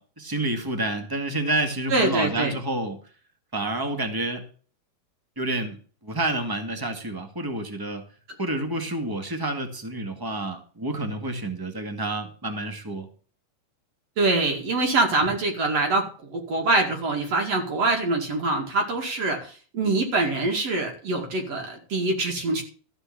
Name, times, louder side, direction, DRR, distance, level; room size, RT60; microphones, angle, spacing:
voice 1, 0.0-3.0 3.5-4.4 5.3-8.0 8.4-13.1, right 2 dB, 10° right, 6 dB, 1.2 m, -29 dB
voice 2, 1.9-2.6 14.2-22.6, right 2 dB, 50° right, 1 dB, 3.3 m, -24 dB
14.5 x 5.3 x 8.5 m, 0.41 s
omnidirectional pair, 3.8 m